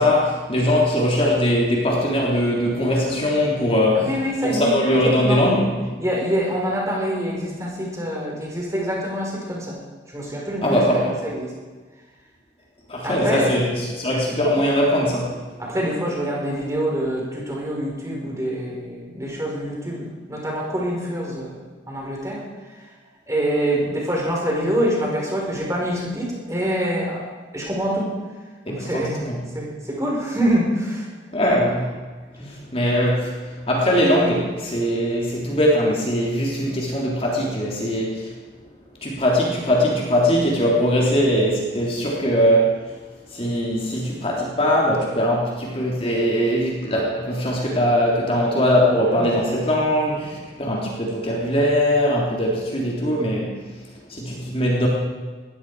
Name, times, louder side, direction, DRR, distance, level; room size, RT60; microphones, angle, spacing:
voice 1, 0.0-4.1 4.4-5.7 10.6-11.1 12.9-15.4 28.7-29.4 31.3-31.9 32.4-38.3 39.0-42.8 43.3-53.5 54.1-54.9, equal, 30° left, -3 dB, 3.3 m, -21 dB
voice 2, 3.9-4.7 5.0-5.5 6.0-9.8 10.1-10.8 11.2-11.5 13.0-13.5 15.6-22.9 23.3-27.3 27.5-28.1 28.7-31.1 32.4-32.5 49.1-49.3, equal, 15° right, -3 dB, 4.8 m, -25 dB
19.5 x 15.0 x 4.9 m, 1.4 s
head